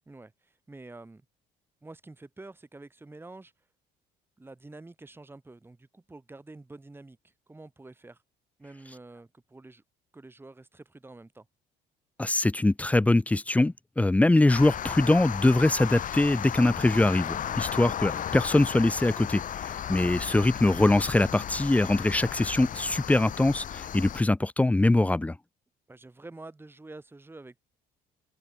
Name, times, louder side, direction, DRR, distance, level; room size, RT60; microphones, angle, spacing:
voice 1, 0.1-1.2 1.8-3.7 4.4-8.2 8.6-9.8 10.1-11.5 17.5-17.7 25.9-27.6, right 2 dB, 15° right, 2.8 m, -48 dB
voice 2, 12.2-25.4, left 2 dB, 10° left, 0.5 m, -23 dB
sound 1, 14.5-24.2, left 10 dB, 50° left, 2.1 m, -35 dB
open air
cardioid pair, 110°, 17 cm